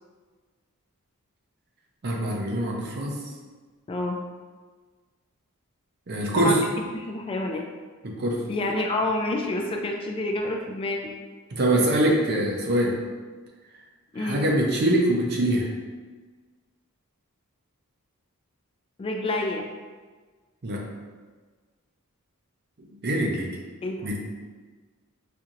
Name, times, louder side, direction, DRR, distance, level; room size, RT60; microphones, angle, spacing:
voice 1, 2.0-3.2 6.1-6.6 8.0-8.4 11.5-13.0 14.2-15.7 20.6-20.8 23.0-23.5 24.0-24.2, right 1 dB, 50° right, -1 dB, 0.6 m, -23 dB
voice 2, 6.9-7.6 8.5-11.1 14.1-14.5 19.0-19.7 23.8-24.0, left 2 dB, 25° left, 1 dB, 0.3 m, -28 dB
4.4 x 2.7 x 2.5 m, 1.4 s
head